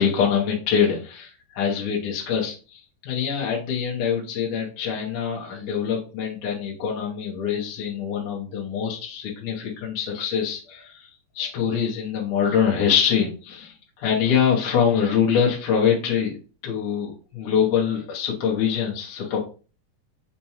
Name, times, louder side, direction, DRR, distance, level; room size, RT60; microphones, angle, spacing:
voice 1, 0.0-16.4 16.6-19.4, left 7 dB, 75° left, -2 dB, 2.0 m, -24 dB
5.5 x 2.2 x 2.8 m, 0.35 s
omnidirectional pair, 3.8 m